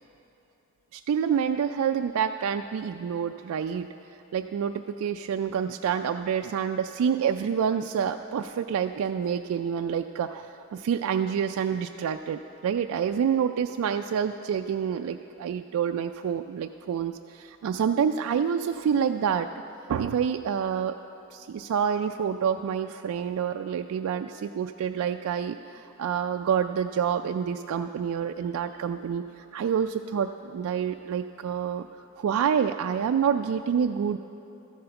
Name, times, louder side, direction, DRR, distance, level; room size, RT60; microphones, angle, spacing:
voice 1, 0.9-3.9 4.3-19.5 19.9-21.0 21.3-31.9 32.2-34.2, right 7 dB, 85° right, 6 dB, 0.3 m, -27 dB
13.5 x 7.8 x 5.8 m, 3.0 s
head